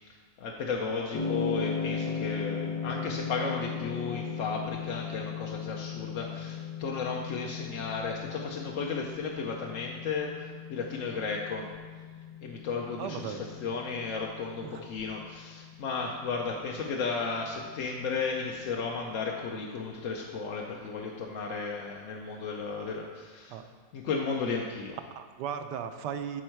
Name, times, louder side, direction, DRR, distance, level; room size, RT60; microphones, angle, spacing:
voice 1, 0.4-11.7 12.4-23.6 23.9-25.0, left 4 dB, 60° left, 0 dB, 0.9 m, -34 dB
sound 1, 1.1-19.4, left 6 dB, 80° left, 1.6 m, -38 dB
voice 2, 13.0-13.4 14.6-14.8 23.5-23.6 25.1-26.4, right 8 dB, 75° right, 8 dB, 1.2 m, -36 dB
13.0 x 4.4 x 4.5 m, 1.5 s
omnidirectional pair, 2.0 m